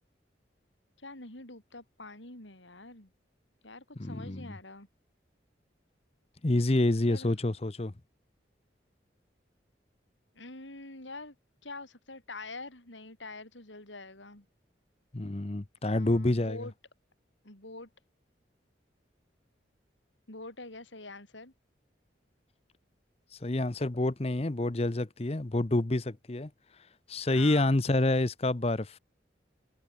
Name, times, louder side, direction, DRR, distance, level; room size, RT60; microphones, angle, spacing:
voice 1, 1.0-3.1 3.6-4.9 7.1-7.3 10.3-11.3 11.6-14.4 15.9-16.7 17.4-17.9 20.3-21.5 27.3-27.8, left 2 dB, 85° left, 6.7 m, -45 dB
voice 2, 4.0-4.5 6.4-7.9 15.1-16.7 23.4-26.5 27.1-29.0, left 2 dB, 35° left, 0.8 m, -28 dB
head